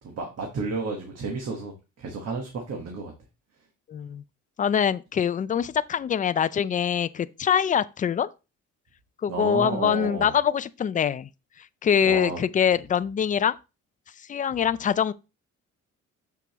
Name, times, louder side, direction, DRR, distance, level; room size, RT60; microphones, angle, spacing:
voice 1, 0.0-3.1 9.3-10.3 12.0-12.4, right 3 dB, 60° right, 1.5 m, -32 dB
voice 2, 3.9-4.2 4.6-8.3 9.2-11.3 11.6-13.6 14.2-15.1, left 8 dB, 30° left, 0.4 m, -24 dB
7.0 x 5.9 x 3.0 m
cardioid pair, 125°, 30 cm